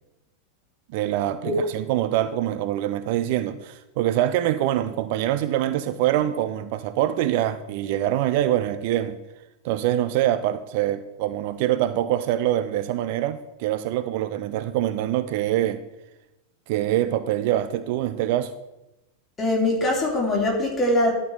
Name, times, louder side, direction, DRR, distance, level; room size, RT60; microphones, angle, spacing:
voice 1, 0.9-9.2 9.6-15.8 16.7-18.5, right 12 dB, 50° right, 0.4 m, -24 dB
voice 2, 19.4-21.1, left 1 dB, 15° left, 3.2 m, -22 dB
12.0 x 4.4 x 6.7 m
figure-of-eight pair, 90°, 0 cm